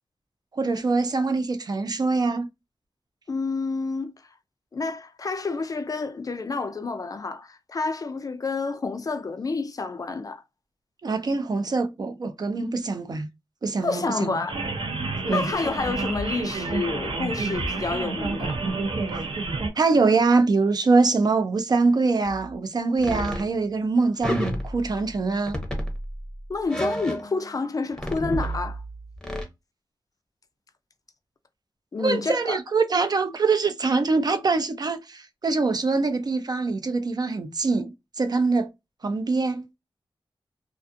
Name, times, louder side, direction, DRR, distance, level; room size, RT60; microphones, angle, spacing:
voice 1, 0.5-2.5 11.0-13.3 13.6-14.4 15.3-15.5 19.1-19.2 19.7-25.6 32.0-38.7 39.0-39.6, right 3 dB, 50° right, 0.5 m, -24 dB
voice 2, 3.3-4.3 4.7-10.4 13.8-14.7 15.2-18.6 26.5-28.8 31.9-32.6, left 4 dB, 40° left, 0.4 m, -29 dB
sound 1, 14.5-19.7, right 3 dB, 85° right, 0.7 m, -29 dB
sound 2, 22.2-22.5 23.0-23.5 24.2-25.2 25.5-27.6 27.9-29.4, equal, 5° left, 0.7 m, -31 dB
2.4 x 2.4 x 2.5 m
wide cardioid pair, 100°, 9 cm